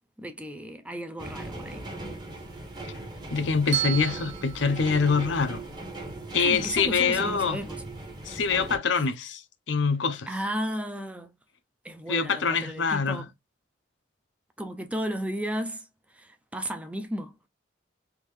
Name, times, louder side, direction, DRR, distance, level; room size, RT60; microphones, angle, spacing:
voice 1, 0.2-1.9 6.4-7.8 10.3-11.3 11.8-13.3 14.6-15.9 16.1-17.4, equal, 5° right, 0.4 m, -34 dB
sound 1, 1.2-8.8, right 2 dB, 25° right, 0.9 m, -39 dB
voice 2, 3.3-5.6 6.3-7.6 8.3-9.4 9.7-10.3 12.1-13.3, left 5 dB, 80° left, 0.6 m, -25 dB
Bell, 3.7-5.9, right 13 dB, 75° right, 0.7 m, -34 dB
3.6 x 2.7 x 3.1 m
head